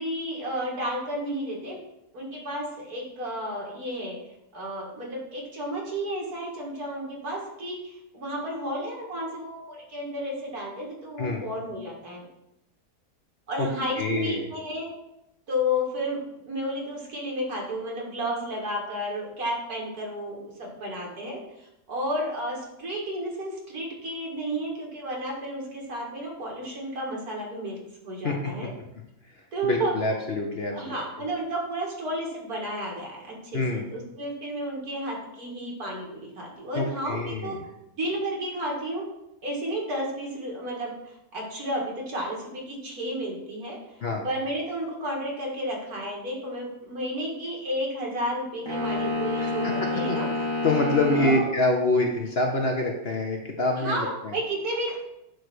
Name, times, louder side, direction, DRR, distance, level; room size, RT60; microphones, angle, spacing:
voice 1, 0.0-1.8 2.1-4.2 4.5-12.2 13.5-14.9 15.5-16.2 16.5-21.4 21.9-28.7 29.5-30.2 30.7-37.6 38.0-39.0 39.4-43.8 44.2-50.3 51.1-51.5 53.7-55.0, equal, 70° right, -2 dB, 2.3 m, -32 dB
voice 2, 14.0-14.5 28.2-28.7 29.6-31.0 33.5-33.8 36.7-37.6 44.0-44.2 49.4-49.7 50.1-54.3, left 2 dB, 45° left, 1 dB, 0.9 m, -26 dB
sound 1, 48.7-51.5, left 2 dB, 15° left, 1.6 m, -28 dB
8.6 x 3.2 x 6.2 m, 0.85 s
omnidirectional pair, 1.7 m